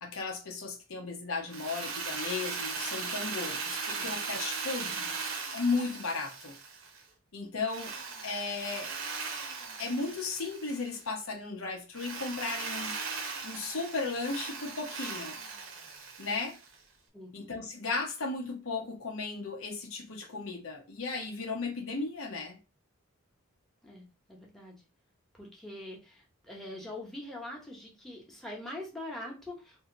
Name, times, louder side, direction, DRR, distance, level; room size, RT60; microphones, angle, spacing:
voice 1, 0.0-5.1 5.5-6.5 7.3-7.9 8.2-9.0 9.8-13.0 13.4-15.4 16.2-16.6 17.3-22.6, left 3 dB, 80° left, 0.9 m, -35 dB
Drill, 1.5-7.0 7.7-11.0 11.9-16.7, right 4 dB, 70° right, 0.7 m, -38 dB
voice 2, 23.8-24.8 25.3-29.9, left 1 dB, ahead, 0.9 m, -43 dB
2.8 x 2.7 x 3.8 m
head